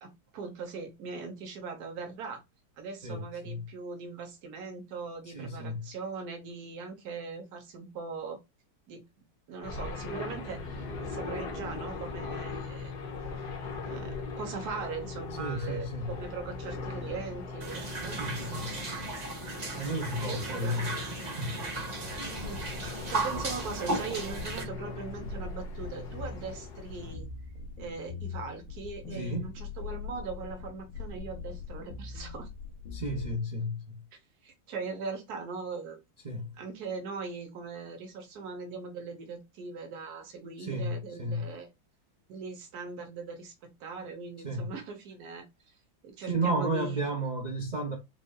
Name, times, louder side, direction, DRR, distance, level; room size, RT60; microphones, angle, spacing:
voice 1, 0.0-2.4 2.8-8.4 8.9-9.0 9.5-12.9 13.8-18.2 20.1-20.8 22.2-27.3 27.8-32.5 34.4-36.0 36.5-41.7 42.3-45.4 46.0-47.0, right 4 dB, 55° right, 1.4 m, -40 dB
voice 2, 3.0-3.6 5.3-5.8 15.4-16.1 18.1-19.0 19.7-20.9 21.2-21.8 29.2-29.5 32.9-34.0 36.2-36.5 40.6-41.5 44.4-44.7 46.3-47.9, right 1 dB, 85° right, 0.4 m, -33 dB
sound 1, 9.6-27.2, left 3 dB, 60° left, 1.5 m, -40 dB
sound 2, 17.6-24.6, right 2 dB, 35° right, 0.7 m, -36 dB
sound 3, 22.1-33.3, left 5 dB, 80° left, 2.0 m, -42 dB
5.3 x 2.5 x 2.3 m
omnidirectional pair, 2.1 m